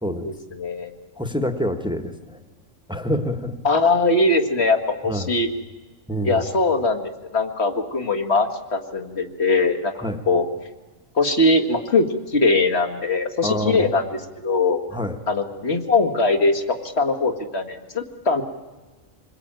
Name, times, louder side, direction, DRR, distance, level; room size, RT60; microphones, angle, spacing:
voice 1, 0.6-0.9 3.6-5.5 6.2-9.9 10.3-10.5 11.2-14.0 14.4-14.8 15.3-18.4, left 3 dB, 50° left, 4 dB, 2.2 m, -21 dB
voice 2, 1.2-2.4 2.9-3.6 5.0-5.3 6.1-6.5 10.0-10.2 13.4-13.9 14.9-15.2, equal, 5° right, 6 dB, 1.4 m, -26 dB
27.5 x 21.0 x 9.0 m, 1.2 s
omnidirectional pair, 1.4 m